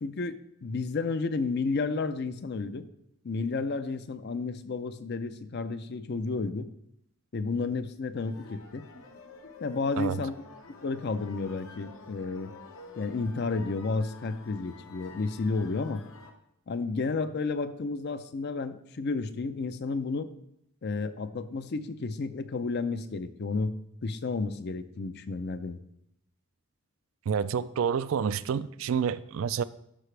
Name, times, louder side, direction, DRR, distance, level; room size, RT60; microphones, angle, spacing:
voice 1, 0.0-2.8 3.2-6.7 7.3-8.9 9.6-10.4 10.8-12.5 13.0-16.0 16.7-20.3 20.8-23.8 24.0-25.8, left 3 dB, 50° left, 0.5 m, -32 dB
sound 1, 8.1-16.3, left 3 dB, 70° left, 1.0 m, -50 dB
voice 2, 27.3-29.6, right 7 dB, 65° right, 0.3 m, -28 dB
12.5 x 5.9 x 3.3 m
head